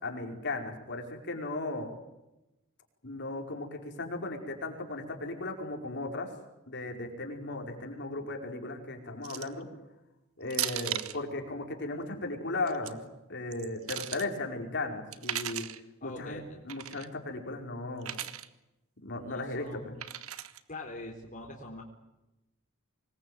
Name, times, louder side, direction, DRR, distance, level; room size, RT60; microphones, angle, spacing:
voice 1, 0.0-1.9 3.0-6.3 6.7-9.7 10.4-13.0 13.3-15.7 16.0-18.2 19.0-19.8, left 2 dB, 55° left, 3 dB, 5.0 m, -36 dB
sound 1, 9.2-9.6 10.5-11.2 12.5-12.9 13.5-14.3 15.1-15.8 16.7-17.1 18.0-18.5 20.0-20.6, right 11 dB, 75° right, 1.5 m, -36 dB
voice 2, 16.0-16.6 19.2-20.0 20.7-21.8, left 2 dB, 40° left, 0 dB, 4.1 m, -43 dB
26.0 x 21.0 x 9.5 m, 0.96 s
head